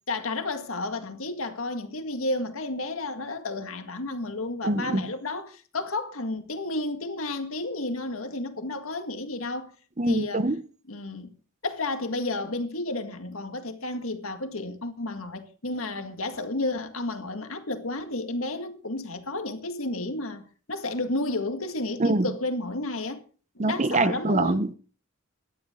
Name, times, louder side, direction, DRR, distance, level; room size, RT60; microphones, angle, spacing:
voice 1, 0.1-9.7 10.0-10.5 10.9-11.3 11.6-20.4 20.7-23.2 23.6-24.6, left 2 dB, 85° left, 1.9 m, -32 dB
voice 2, 4.6-5.1 10.0-10.6 22.0-22.3 23.6-24.7, right 2 dB, 35° right, 0.8 m, -24 dB
18.5 x 12.5 x 3.8 m
head